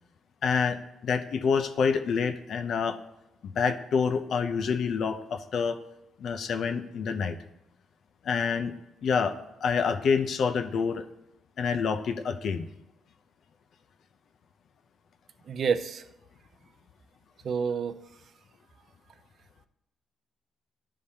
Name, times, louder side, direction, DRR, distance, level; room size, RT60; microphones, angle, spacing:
voice 1, 0.4-0.8 1.0-3.0 3.6-5.8 6.2-7.3 8.2-8.7 9.0-9.3 9.6-11.0 11.6-12.7, left 6 dB, 65° left, 8 dB, 0.6 m, -27 dB
voice 2, 15.5-16.0 17.4-18.0, right 6 dB, 55° right, 11 dB, 0.5 m, -28 dB
11.0 x 5.0 x 2.8 m, 0.88 s
cardioid pair, 90°, 0 cm